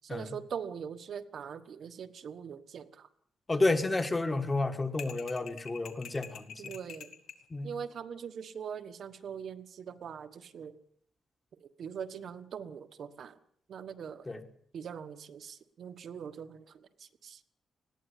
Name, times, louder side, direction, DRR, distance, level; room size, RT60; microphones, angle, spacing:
voice 1, 0.0-3.1 6.6-7.2 7.6-10.8 11.6-13.4 13.7-14.3 14.7-17.4, right 7 dB, 55° right, 8 dB, 1.4 m, -42 dB
voice 2, 3.5-6.7 7.5-7.7 14.3-14.4, left 2 dB, 15° left, 8 dB, 1.5 m, -31 dB
sound 1, 5.0-7.4, left 8 dB, 65° left, 2.2 m, -46 dB
20.0 x 16.0 x 9.9 m, 0.65 s
wide cardioid pair, 175°, 0 cm